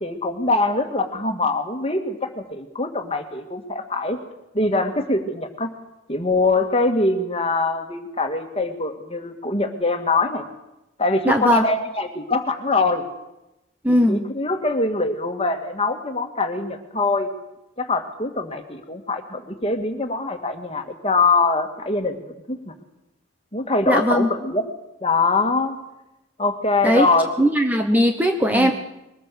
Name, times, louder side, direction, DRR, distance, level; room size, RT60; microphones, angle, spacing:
voice 1, 0.0-4.2 4.5-5.7 6.1-10.4 11.0-13.0 13.9-17.3 17.8-22.2 22.5-22.7 23.5-24.7 25.0-25.8 26.4-27.5 28.5-28.7, left 3 dB, 30° left, 6 dB, 2.0 m, -23 dB
voice 2, 11.3-11.6 13.8-14.2 23.9-24.3 26.8-27.1 27.4-28.7, equal, 10° right, 4 dB, 0.9 m, -18 dB
22.5 x 19.5 x 6.9 m, 0.93 s
head